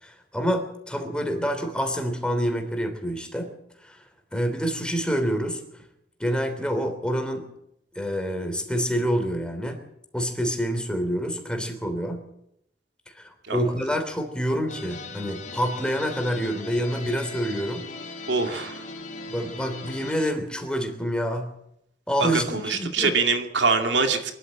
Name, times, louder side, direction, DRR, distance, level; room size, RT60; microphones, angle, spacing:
voice 1, 0.0-3.5 3.8-4.0 4.3-5.6 6.2-7.5 7.9-9.8 10.1-12.2 13.1-17.9 19.3-21.5 22.1-23.1, equal, 5° left, 5 dB, 3.2 m, -27 dB
sound 1, 14.7-20.3, left 3 dB, 45° left, 4.1 m, -39 dB
voice 2, 18.3-18.8 22.2-24.3, right 4 dB, 85° right, 5 dB, 2.3 m, -24 dB
24.0 x 13.5 x 8.7 m, 0.78 s
head